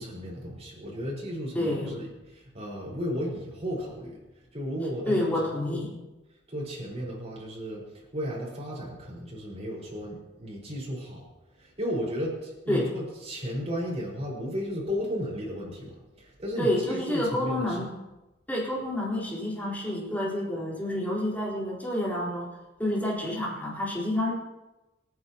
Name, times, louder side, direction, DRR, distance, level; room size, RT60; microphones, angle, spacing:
voice 1, 0.0-4.2 4.5-5.9 6.5-11.2 11.5-17.9, equal, 35° right, -4 dB, 5.0 m, -34 dB
voice 2, 1.5-2.0 5.1-5.9 12.7-13.0 16.6-18.0 18.5-24.3, left 1 dB, 10° left, -5 dB, 4.2 m, -29 dB
26.5 x 9.6 x 3.0 m, 1.0 s
head